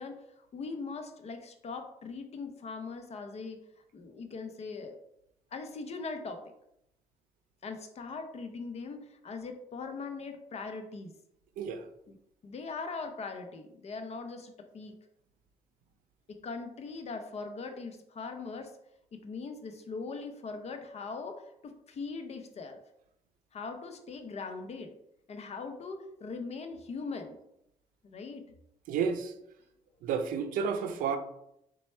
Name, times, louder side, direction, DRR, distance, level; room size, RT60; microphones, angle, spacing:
voice 1, 0.0-3.6 3.9-5.0 5.5-6.4 7.6-11.1 12.1-12.2 12.4-15.0 16.3-18.7 19.1-22.8 23.5-25.0 25.3-27.4 28.0-28.4, left 4 dB, 55° left, 6 dB, 0.6 m, -40 dB
voice 2, 28.9-29.3 30.0-31.2, right 6 dB, 90° right, 9 dB, 0.5 m, -31 dB
4.1 x 2.2 x 4.3 m, 0.79 s
cardioid pair, 75°, 14 cm